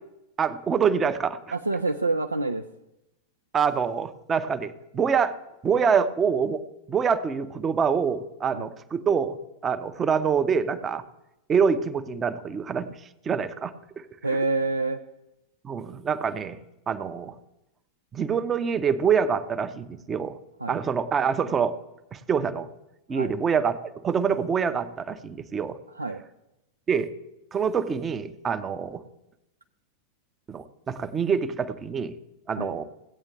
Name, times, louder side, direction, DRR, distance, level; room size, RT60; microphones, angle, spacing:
voice 1, 0.4-1.5 3.5-5.3 5.6-6.6 6.9-9.4 9.6-11.0 11.5-13.0 13.3-14.0 14.3-14.4 15.6-16.6 16.9-17.3 18.1-20.4 20.7-21.7 22.1-22.7 23.1-25.8 26.9-27.1 27.5-29.0 30.5-32.2 32.5-32.8, right 6 dB, 20° right, 12 dB, 0.7 m, -25 dB
voice 2, 1.5-2.6 8.5-8.7 14.2-15.0 20.6-20.8 23.1-23.3 26.0-26.2 32.6-32.7, right 3 dB, 80° right, 7 dB, 0.4 m, -27 dB
16.5 x 8.8 x 3.4 m, 0.90 s
figure-of-eight pair, 90°, 0 cm